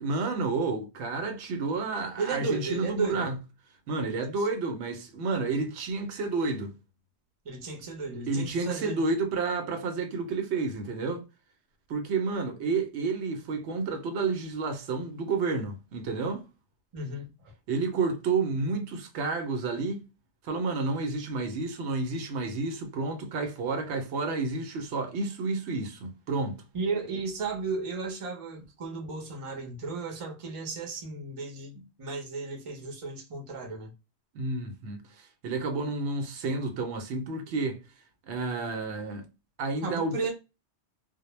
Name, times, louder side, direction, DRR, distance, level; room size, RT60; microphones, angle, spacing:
voice 1, 0.0-3.4 3.9-6.7 8.3-11.2 11.9-16.4 17.7-20.0 20.4-26.6 34.3-35.0 35.4-37.8 38.3-39.3 39.6-40.3, right 3 dB, 80° right, 0.9 m, -30 dB
voice 2, 2.2-3.3 4.3-4.5 7.4-9.1 16.9-17.5 26.7-33.9 39.8-40.3, right 4 dB, 35° right, 0.6 m, -34 dB
2.1 x 2.1 x 3.0 m
omnidirectional pair, 1.1 m